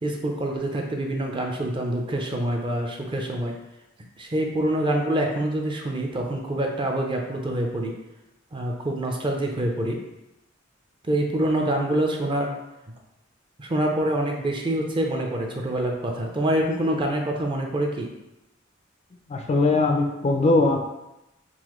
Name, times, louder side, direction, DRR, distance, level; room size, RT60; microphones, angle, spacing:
voice 1, 0.0-3.5 4.2-7.9 8.5-10.0 11.1-12.5 13.6-18.1, right 1 dB, 25° right, 1 dB, 0.5 m, -26 dB
voice 2, 19.3-20.8, left 2 dB, 35° left, 3 dB, 0.3 m, -20 dB
4.0 x 2.6 x 3.0 m, 0.92 s
head